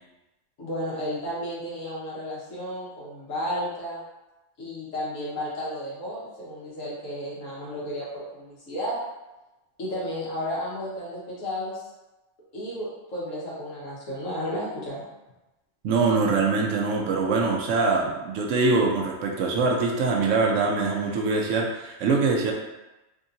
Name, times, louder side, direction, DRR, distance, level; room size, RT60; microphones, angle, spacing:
voice 1, 0.6-4.0 4.6-9.0 9.8-11.9 12.5-15.0, equal, 85° left, -7 dB, 1.5 m, -33 dB
voice 2, 15.8-22.5, right 4 dB, 80° right, 0 dB, 1.0 m, -23 dB
3.5 x 2.7 x 2.6 m, 1.0 s
omnidirectional pair, 1.3 m